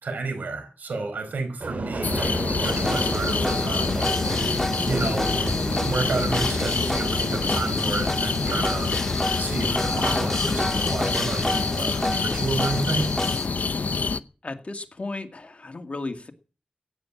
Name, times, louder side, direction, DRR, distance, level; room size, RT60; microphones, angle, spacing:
voice 1, 0.0-4.3 4.9-5.3 5.6-9.0 9.4-13.1, right 3 dB, 85° right, 4.7 m, -31 dB
Subway metro underground, 1.6-12.3 12.7-13.4 13.7-13.8, right 2 dB, 65° right, 5.1 m, -33 dB
sound 1, 2.0-14.2, left 4 dB, 70° left, 0.7 m, -26 dB
sound 2, 2.6-13.5, left 1 dB, 10° left, 1.7 m, -31 dB
voice 2, 14.4-16.3, left 2 dB, 45° left, 2.2 m, -34 dB
16.5 x 9.9 x 7.4 m
cardioid pair, 50°, 3 cm